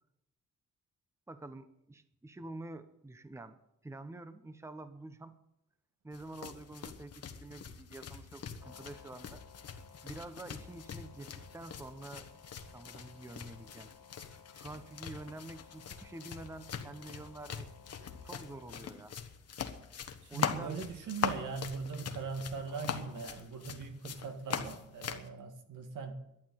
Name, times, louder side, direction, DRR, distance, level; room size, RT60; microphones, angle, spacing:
voice 1, 1.3-5.4 6.0-9.4 10.0-12.3 12.7-13.9 14.5-17.7 18.2-19.2 20.3-20.8, right 2 dB, 10° right, 11 dB, 0.8 m, -47 dB
sound 1, 6.1-25.3, left 7 dB, 55° left, 1.3 m, -42 dB
sound 2, 8.6-18.9 22.6-23.3, left 7 dB, 75° left, 1.5 m, -58 dB
voice 2, 20.2-26.2, right 5 dB, 90° right, 6 dB, 2.0 m, -40 dB
12.0 x 10.5 x 9.3 m, 0.84 s
wide cardioid pair, 145°, 30 cm